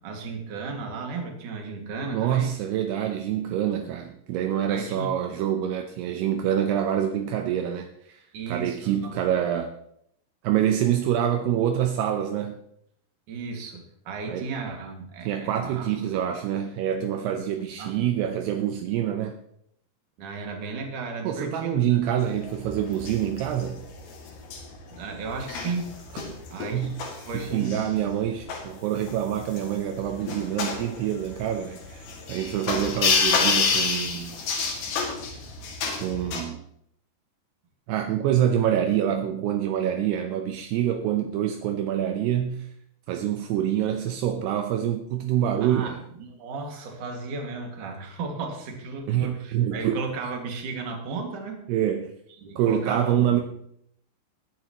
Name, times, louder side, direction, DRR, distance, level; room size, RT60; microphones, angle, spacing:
voice 1, 0.0-2.5 4.7-5.2 8.3-9.1 13.3-16.1 17.2-17.4 17.8-18.0 20.2-22.0 24.9-26.0 26.5-28.1 45.6-51.6 52.3-53.3, right 4 dB, 55° right, 2 dB, 3.3 m, -35 dB
voice 2, 2.1-9.7 10.4-12.6 14.3-14.5 15.2-19.4 21.2-23.8 26.7-27.0 27.3-34.3 36.0-36.6 37.9-42.7 43.1-46.0 49.1-50.0 51.7-52.1 52.6-53.4, right 10 dB, 80° right, 5 dB, 2.8 m, -26 dB
sound 1, 22.2-36.4, left 5 dB, 85° left, 4.4 m, -29 dB
20.5 x 10.0 x 3.0 m, 0.71 s
omnidirectional pair, 4.8 m